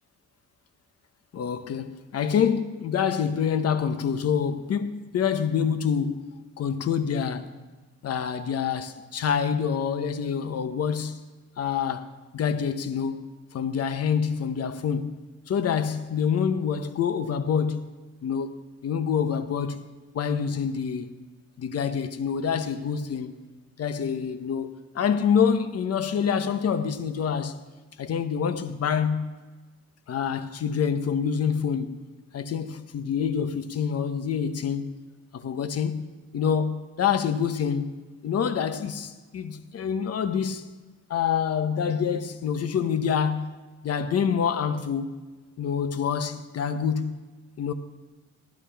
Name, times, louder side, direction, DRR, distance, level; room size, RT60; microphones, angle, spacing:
voice 1, 1.3-7.5 8.0-11.2 11.6-13.3 13.5-15.2 15.5-17.9 18.2-18.5 18.8-19.8 20.1-21.1 21.6-23.4 23.8-27.6 28.0-29.3 30.1-32.0 32.3-34.9 35.3-36.1 36.3-40.6 41.1-43.5 43.8-45.1 45.6-47.2 47.6-47.7, left 7 dB, 55° left, 0.9 m, -26 dB
15.5 x 12.5 x 3.4 m
cardioid pair, 90°, 30 cm